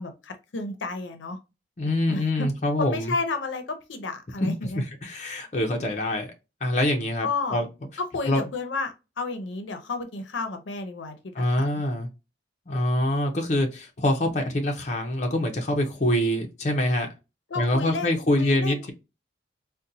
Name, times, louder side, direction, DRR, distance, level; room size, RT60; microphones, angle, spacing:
voice 1, 0.0-1.4 2.1-2.5 2.8-4.8 7.2-7.6 8.0-11.8 17.5-18.9, left 3 dB, 90° left, 0.6 m, -32 dB
voice 2, 1.8-3.1 4.4-6.3 6.6-7.7 8.3-8.4 11.3-12.1 12.7-17.1 17.5-18.9, left 1 dB, 40° left, 0.6 m, -25 dB
4.0 x 2.2 x 2.6 m
head